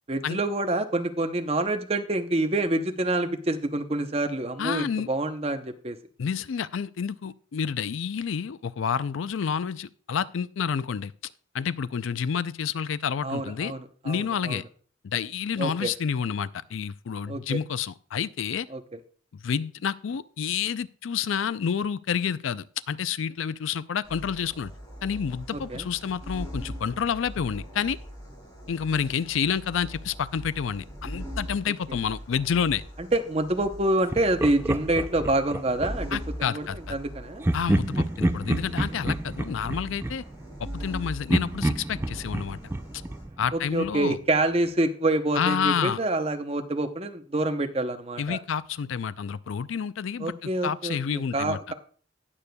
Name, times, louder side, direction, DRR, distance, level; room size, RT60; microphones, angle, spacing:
voice 1, 0.1-6.0 13.2-13.8 14.1-14.6 15.6-15.9 17.3-17.6 18.7-18.8 25.7-25.9 33.0-36.1 36.5-37.5 43.5-48.4 50.2-51.7, right 2 dB, 30° right, 7 dB, 0.7 m, -27 dB
voice 2, 4.6-5.1 6.2-11.1 11.5-13.7 14.0-14.6 15.0-18.7 19.3-24.7 25.0-28.0 28.7-32.8 36.1-37.0 37.5-40.2 40.6-42.6 43.4-44.2 45.4-46.0 48.2-51.6, left 7 dB, 80° left, 16 dB, 0.4 m, -29 dB
sound 1, 24.0-43.2, equal, 15° left, 4.0 m, -41 dB
Laughter, 34.1-36.2 37.4-40.9 41.3-44.0, right 1 dB, 10° right, 0.3 m, -29 dB
18.5 x 6.8 x 2.3 m, 0.43 s
head